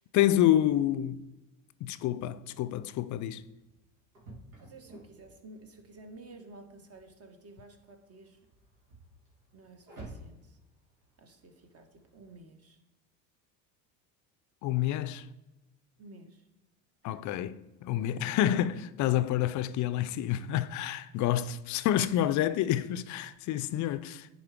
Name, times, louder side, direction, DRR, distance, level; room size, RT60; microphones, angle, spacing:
voice 1, 0.1-1.3 1.8-3.4 14.6-15.3 17.0-24.3, left 12 dB, 45° left, 0.5 m, -28 dB
sound 1, 3.4-12.4, right 2 dB, 85° right, 2.3 m, -54 dB
voice 2, 4.6-8.4 9.5-10.6 11.2-12.8 16.0-16.5 17.0-17.2 18.1-18.4, right 2 dB, 35° right, 1.3 m, -52 dB
10.0 x 3.8 x 3.5 m
hypercardioid pair, 75°, 41 cm